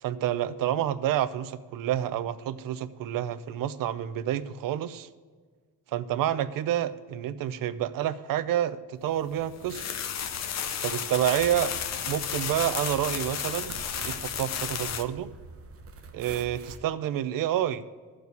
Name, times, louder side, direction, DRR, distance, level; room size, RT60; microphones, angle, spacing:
voice 1, 0.0-5.1 5.9-9.8 10.8-11.7 12.0-15.3 16.1-17.8, right 11 dB, 75° right, 13 dB, 0.6 m, -29 dB
sound 1, 9.3-15.0, left 8 dB, 50° left, 0.7 m, -33 dB
sound 2, 11.3-16.8, right 4 dB, 40° right, 0.9 m, -45 dB
13.5 x 4.8 x 8.0 m, 1.5 s
cardioid pair, 175°, 34 cm